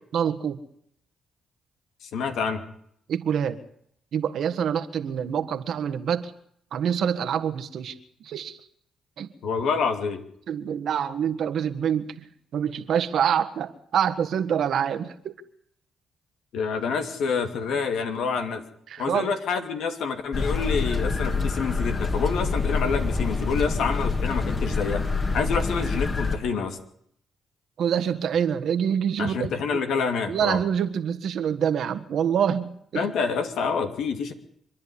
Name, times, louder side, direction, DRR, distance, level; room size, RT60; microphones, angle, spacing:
voice 1, 0.1-0.6 3.1-3.6 4.1-6.3 6.7-8.0 8.2-8.6 9.2-9.3 10.5-12.3 12.5-15.4 18.9-19.3 27.8-29.8 30.3-33.0, right 8 dB, 70° right, 8 dB, 1.6 m, -26 dB
voice 2, 2.0-2.6 9.4-10.2 16.5-18.6 19.0-25.0 25.3-26.8 29.2-30.6 32.9-34.3, left 5 dB, 75° left, 6 dB, 2.7 m, -27 dB
sound 1, 20.3-26.4, left 4 dB, 40° left, 3.3 m, -26 dB
25.5 x 10.5 x 10.0 m, 0.69 s
supercardioid pair, 55°, 0 cm